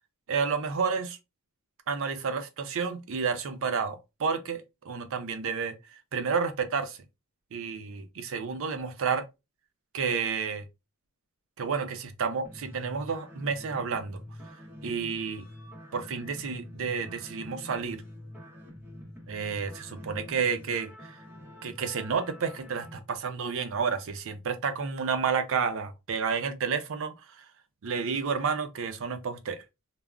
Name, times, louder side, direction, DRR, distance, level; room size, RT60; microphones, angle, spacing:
voice 1, 0.3-1.2 1.9-5.7 6.1-7.0 7.5-9.2 9.9-10.6 11.6-14.2 14.8-15.4 15.9-18.0 19.3-20.9 21.6-27.4 27.8-29.6, right 5 dB, 65° right, 0.5 m, -30 dB
sound 1, 12.4-23.0, left 1 dB, 10° right, 0.7 m, -46 dB
3.5 x 2.0 x 2.2 m
head